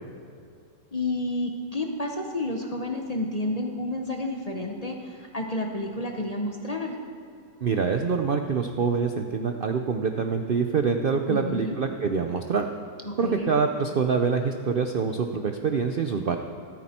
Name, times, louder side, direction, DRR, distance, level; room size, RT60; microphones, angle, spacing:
voice 1, 0.9-7.0 11.3-11.8 13.0-13.5, left 1 dB, 30° left, 2 dB, 0.7 m, -30 dB
voice 2, 7.6-12.7 13.2-16.4, right 5 dB, 80° right, 5 dB, 0.4 m, -25 dB
14.5 x 13.0 x 4.3 m, 2.6 s
omnidirectional pair, 1.8 m